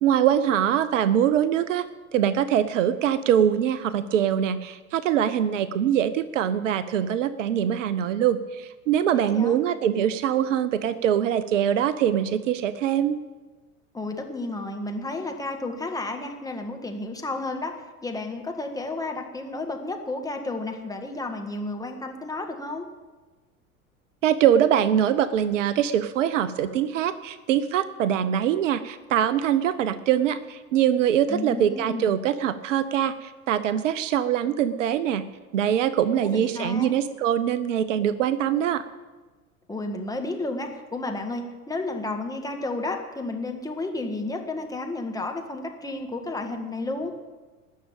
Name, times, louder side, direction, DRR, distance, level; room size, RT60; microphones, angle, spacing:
voice 1, 0.0-13.2 24.2-35.2 35.5-38.9, right 10 dB, 60° right, 14 dB, 0.8 m, -23 dB
voice 2, 9.2-9.6 13.9-22.9 31.3-32.2 36.1-37.0 39.7-47.1, left 2 dB, 10° left, 3 dB, 1.8 m, -32 dB
18.5 x 6.6 x 8.7 m, 1.3 s
figure-of-eight pair, 80°, 43 cm